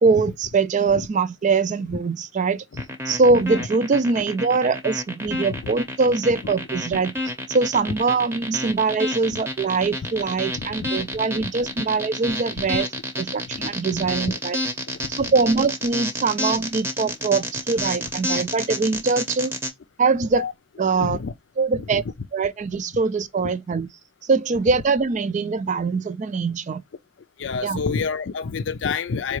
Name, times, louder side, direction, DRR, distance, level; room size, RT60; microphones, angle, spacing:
voice 1, 0.0-2.6 3.1-7.1 7.5-12.9 13.2-14.6 15.2-19.5 20.0-20.5 20.8-21.2 21.6-22.0 22.3-23.9 24.3-26.8 27.6-27.8, right 4 dB, 40° right, 0.4 m, -22 dB
sound 1, 2.8-19.7, equal, 15° right, 0.7 m, -29 dB
voice 2, 10.5-11.1 11.3-11.5 12.3-12.4 13.5-13.6 14.0-14.4 15.0-15.1 20.2-20.5 21.0-21.3 21.7-22.1 23.4-23.5 27.4-29.4, left 5 dB, 85° left, 0.5 m, -29 dB
4.6 x 2.3 x 3.0 m
head